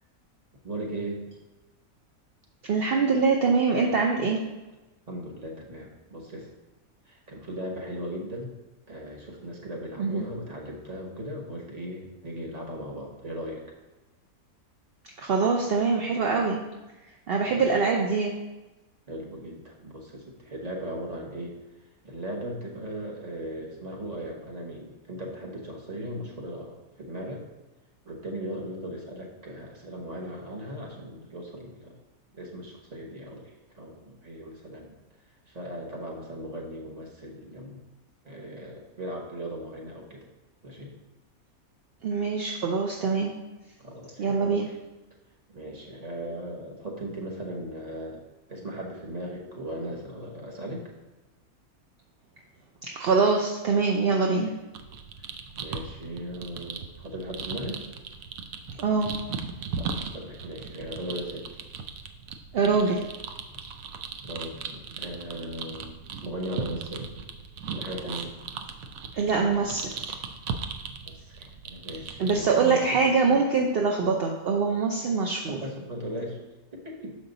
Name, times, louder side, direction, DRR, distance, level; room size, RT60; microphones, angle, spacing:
voice 1, 0.6-1.3 5.1-6.5 7.1-8.5 8.9-13.6 17.4-17.8 19.1-21.5 22.0-27.4 28.0-32.0 32.3-34.9 35.5-37.8 38.2-40.3 40.6-40.9 43.8-44.7 45.5-48.2 48.5-50.8 55.5-57.8 59.8-61.5 64.2-67.1 67.7-68.3 71.0-73.0 75.5-76.4 76.7-77.1, right 1 dB, 30° right, 0 dB, 1.1 m, -38 dB
voice 2, 2.7-4.4 10.0-10.2 15.2-16.6 17.3-18.3 42.0-43.3 44.2-44.7 52.8-54.5 58.8-59.1 62.5-63.0 69.2-70.1 72.2-75.6, right 4 dB, 55° right, 0 dB, 0.7 m, -24 dB
sound 1, 54.7-72.4, right 5 dB, 75° right, 1.0 m, -38 dB
6.6 x 5.4 x 3.9 m, 1.1 s
omnidirectional pair, 1.5 m